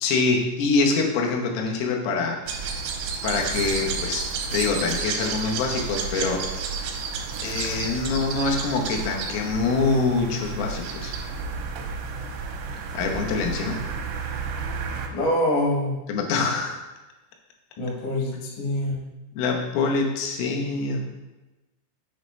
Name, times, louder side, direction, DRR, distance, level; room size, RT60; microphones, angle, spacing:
voice 1, 0.0-2.4 3.2-6.4 7.4-11.1 12.9-13.8 16.1-16.8 19.4-21.0, left 4 dB, 90° left, 0 dB, 3.6 m, -25 dB
sound 1, 2.5-15.1, right 5 dB, 85° right, 2.6 m, -31 dB
voice 2, 15.1-16.0 17.8-19.0, left 1 dB, 70° left, -2 dB, 1.9 m, -25 dB
8.2 x 5.4 x 3.1 m, 1.1 s
omnidirectional pair, 5.8 m